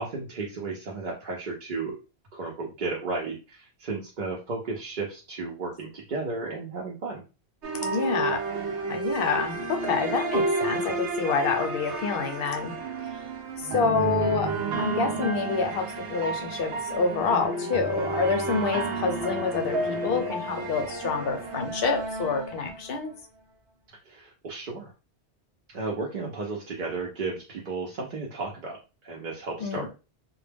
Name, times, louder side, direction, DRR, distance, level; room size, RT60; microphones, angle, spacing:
voice 1, 0.0-2.0 2.3-7.2 24.1-24.9 25.7-29.9, right 3 dB, 55° right, -2 dB, 0.6 m, -34 dB
sound 1, 7.6-23.1, right 2 dB, 85° right, 0.9 m, -31 dB
voice 2, 7.8-8.4 8.9-12.7 13.7-23.1 29.6-29.9, left 5 dB, 65° left, 5 dB, 0.7 m, -27 dB
2.1 x 2.1 x 3.3 m, 0.31 s
omnidirectional pair, 1.1 m